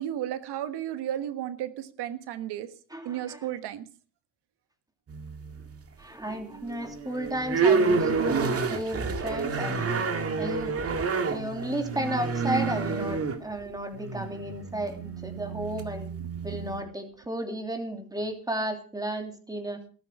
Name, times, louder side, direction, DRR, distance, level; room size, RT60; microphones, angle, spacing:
voice 1, 0.0-2.7 3.0-3.8 16.3-16.6, right 11 dB, 75° right, 11 dB, 1.5 m, -33 dB
voice 2, 2.9-3.4 6.0-10.0 10.4-10.7 11.2-16.1 16.4-19.8, right 1 dB, 10° right, 5 dB, 3.1 m, -33 dB
sound 1, 5.1-5.8 6.2-16.8, right 4 dB, 35° right, 2.0 m, -29 dB
14.0 x 13.5 x 4.9 m, 0.39 s
cardioid pair, 130°, 40 cm